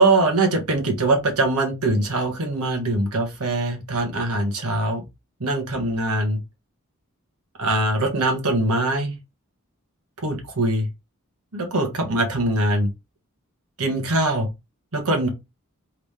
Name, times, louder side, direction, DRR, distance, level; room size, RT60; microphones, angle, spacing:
voice 1, 0.0-5.0 5.4-6.4 7.6-9.1 10.2-10.9 11.5-12.9 13.8-14.5 14.9-15.3, right 2 dB, 90° right, 1.5 m, -22 dB
3.7 x 3.3 x 3.6 m
head